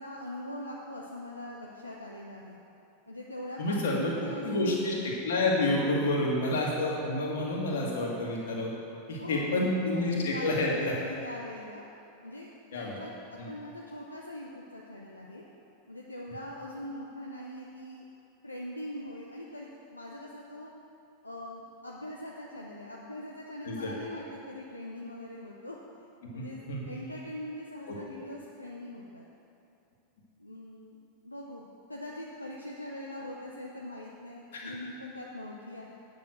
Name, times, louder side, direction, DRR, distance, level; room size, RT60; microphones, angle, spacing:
voice 1, 0.0-2.6 3.1-4.8 9.2-11.8 12.2-13.1 13.4-15.4 15.9-18.0 18.4-20.7 21.2-25.8 26.3-29.3 30.4-31.0 31.2-35.9, left 1 dB, 85° left, -3 dB, 0.7 m, -42 dB
voice 2, 3.6-4.1 4.4-4.9 5.2-8.7 9.1-10.9 12.7-13.0 13.4-13.5 23.6-23.9 26.4-26.8 27.9-28.0 34.5-34.7, left 2 dB, 60° left, -3 dB, 2.1 m, -29 dB
9.2 x 6.9 x 6.2 m, 2.7 s
figure-of-eight pair, 85°, 0 cm